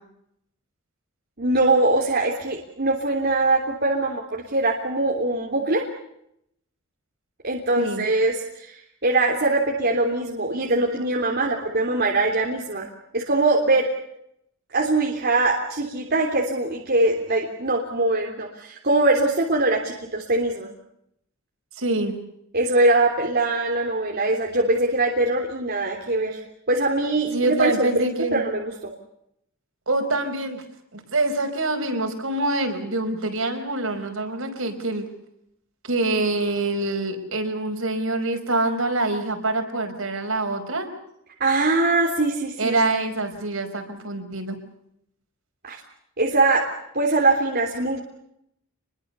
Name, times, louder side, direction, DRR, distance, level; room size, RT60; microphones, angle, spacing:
voice 1, 1.4-5.8 7.4-12.9 13.1-13.9 14.7-20.7 22.5-26.4 26.7-28.0 28.3-28.9 41.4-42.8 45.6-45.8 46.2-46.7 46.9-48.0, right 2 dB, 50° right, 0 dB, 3.4 m, -22 dB
voice 2, 21.8-22.2 27.3-28.4 29.9-30.6 30.9-35.1 35.9-40.9 42.6-44.6, right 2 dB, 65° right, 5 dB, 5.2 m, -25 dB
28.5 x 22.0 x 6.9 m, 0.76 s
head